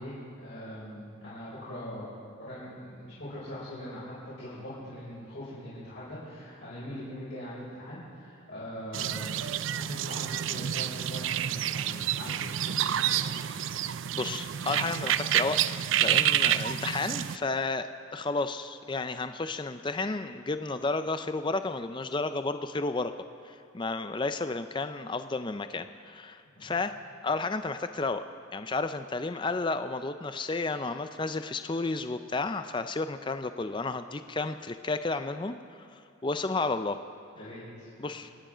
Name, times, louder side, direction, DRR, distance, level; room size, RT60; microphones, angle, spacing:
voice 1, 0.0-2.1 2.4-9.5 9.7-12.5 13.0-13.5 26.6-26.7 37.4-37.9, equal, 65° left, -10 dB, 5.3 m, -42 dB
sound 1, 8.9-17.4, right 10 dB, 70° right, 0.4 m, -29 dB
voice 2, 14.2-15.6 16.0-23.1 23.5-26.9 27.2-28.2 28.5-35.9 36.2-37.0 38.0-38.3, left 3 dB, 25° left, 10 dB, 0.4 m, -32 dB
27.5 x 10.0 x 5.0 m, 2.3 s
head